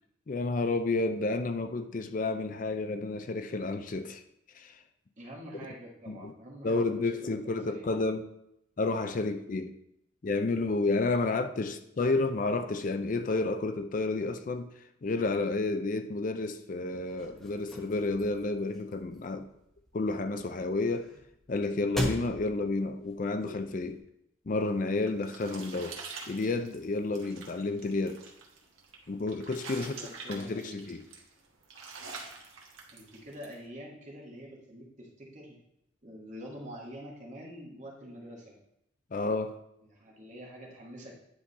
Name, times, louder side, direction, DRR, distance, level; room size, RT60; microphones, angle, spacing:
voice 1, 0.3-4.2 4.6-4.8 6.1-6.3 6.6-8.3 8.8-9.7 10.2-14.7 15.0-19.5 19.9-21.1 21.5-24.0 24.5-26.0 26.3-28.2 29.1-29.9 30.3-31.1 39.1-39.6, left 3 dB, 40° left, 0.4 m, -31 dB
voice 2, 5.2-7.9 29.7-30.8 32.9-35.6 36.0-38.6 39.8-41.2, equal, 35° right, 1.6 m, -46 dB
sound 1, 16.9-24.0, equal, ahead, 1.1 m, -41 dB
sound 2, 24.7-33.6, right 4 dB, 75° right, 1.4 m, -46 dB
9.7 x 3.7 x 4.0 m
head